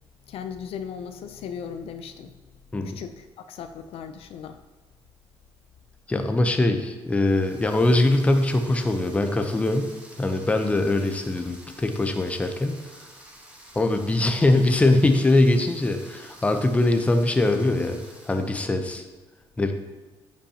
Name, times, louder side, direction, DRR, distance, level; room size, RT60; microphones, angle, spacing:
voice 1, 0.3-2.3 2.8-4.6, left 7 dB, 70° left, 9 dB, 0.5 m, -37 dB
voice 2, 6.1-9.9 10.2-12.8 13.7-18.0 18.2-19.0 19.6-19.7, left 2 dB, 10° left, 6 dB, 0.6 m, -22 dB
sound 1, 7.1-18.8, right 1 dB, 10° right, 1.2 m, -49 dB
9.9 x 5.3 x 2.9 m, 1.2 s
cardioid pair, 125°, 10 cm